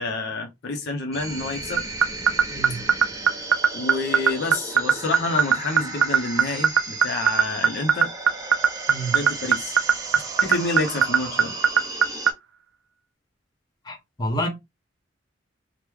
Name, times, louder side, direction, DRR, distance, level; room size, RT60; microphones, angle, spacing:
voice 1, 0.0-1.8 3.7-8.1 9.1-9.8 10.1-11.5, left 2 dB, 60° left, 0.5 m, -28 dB
sound 1, 1.1-12.3, right 3 dB, 20° right, 0.7 m, -35 dB
sound 2, 1.8-12.3, right 8 dB, 70° right, 0.4 m, -16 dB
voice 2, 2.5-2.9 8.9-9.2 13.9-14.5, right 1 dB, 20° left, 0.8 m, -29 dB
3.0 x 2.0 x 3.4 m
head